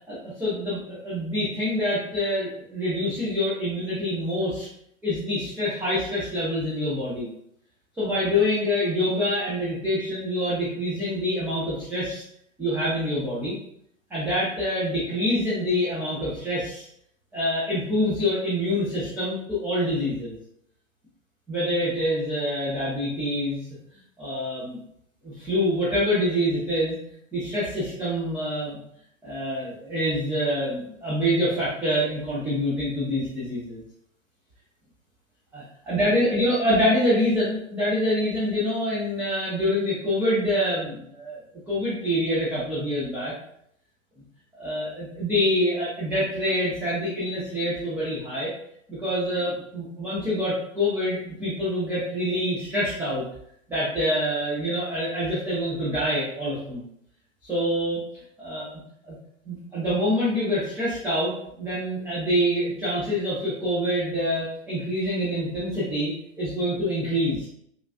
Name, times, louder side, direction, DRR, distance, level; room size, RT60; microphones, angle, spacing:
voice 1, 0.1-4.7 5.0-7.3 8.0-12.2 12.6-13.6 14.1-16.9 17.3-20.4 21.5-23.6 24.2-24.8 25.2-27.0 27.3-28.8 29.2-33.8 35.5-41.4 41.7-43.3 44.6-48.5 48.9-53.2 53.7-56.8 57.5-58.0 58.4-58.7 59.1-59.2 59.5-67.5, equal, 5° right, -9 dB, 0.5 m, -26 dB
3.3 x 2.3 x 2.3 m, 0.70 s
figure-of-eight pair, 105°, 40 cm